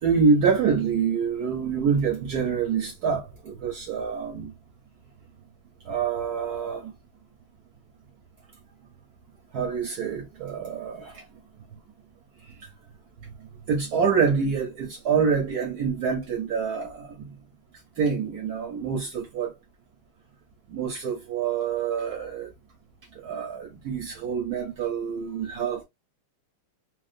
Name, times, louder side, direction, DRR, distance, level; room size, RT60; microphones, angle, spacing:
voice 1, 0.0-4.5 5.8-6.9 9.5-11.2 13.7-17.3 18.0-19.5 20.7-22.5 23.2-25.8, right 6 dB, 70° right, 0.9 m, -26 dB
3.5 x 2.1 x 2.4 m
omnidirectional pair, 2.4 m